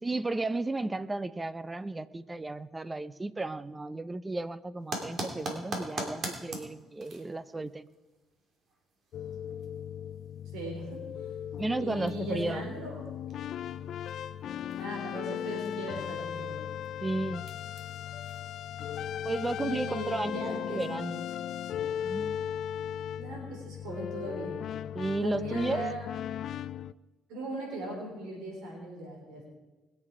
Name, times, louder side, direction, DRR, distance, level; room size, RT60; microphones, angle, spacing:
voice 1, 0.0-7.9 11.6-12.7 17.0-17.5 19.2-21.3 22.0-22.4 24.9-25.8, right 2 dB, 15° right, 16 dB, 0.6 m, -34 dB
sound 1, 4.8-20.0, right 2 dB, 50° right, 2.7 m, -45 dB
sound 2, 9.1-26.9, left 9 dB, 65° left, 0.4 m, -37 dB
voice 2, 10.5-11.0 11.8-12.9 14.8-16.6 19.6-20.9 23.2-24.6 25.2-26.1 27.3-29.4, right 1 dB, 85° right, 0 dB, 4.1 m, -38 dB
21.0 x 7.6 x 4.9 m, 1.2 s
cardioid pair, 95°, 0 cm